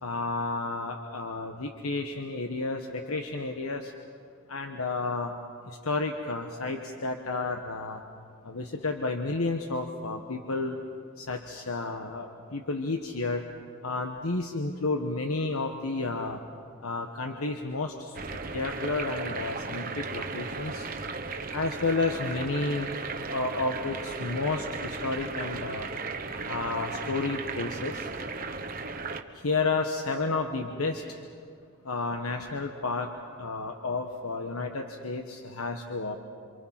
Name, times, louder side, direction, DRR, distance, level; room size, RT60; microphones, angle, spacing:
voice 1, 0.0-3.9 4.5-5.3 5.7-8.0 8.4-10.8 11.2-13.5 13.8-16.4 16.8-20.9 21.5-22.9 23.3-25.9 26.5-28.1 29.3-31.0 31.8-33.1 33.4-36.2, left 3 dB, 85° left, 4 dB, 1.3 m, -31 dB
sound 1, 18.1-29.2, right 4 dB, 40° right, 1.1 m, -36 dB
27.5 x 26.5 x 5.8 m, 2.4 s
head